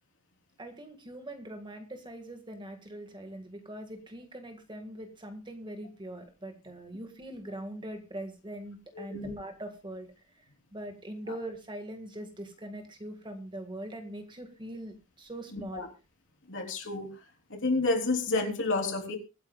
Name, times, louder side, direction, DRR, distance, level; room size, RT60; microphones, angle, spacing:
voice 1, 0.6-10.1 10.7-15.9, right 1 dB, 20° right, 6 dB, 1.7 m, -42 dB
voice 2, 8.9-9.3 11.3-11.4 15.5-15.9 16.5-17.1 17.5-19.2, left 3 dB, 55° left, 2 dB, 3.5 m, -30 dB
24.0 x 9.7 x 2.3 m, 0.29 s
head